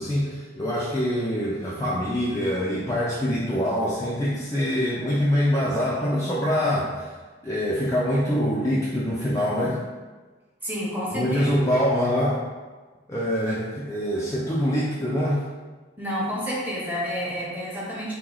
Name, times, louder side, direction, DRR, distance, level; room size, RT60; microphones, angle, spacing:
voice 1, 0.0-7.1 7.4-9.8 11.1-12.4 13.1-15.4, equal, 15° left, -6 dB, 0.3 m, -24 dB
voice 2, 10.6-11.5 16.0-18.1, equal, 10° right, -6 dB, 0.8 m, -29 dB
3.0 x 2.8 x 3.8 m, 1.3 s
head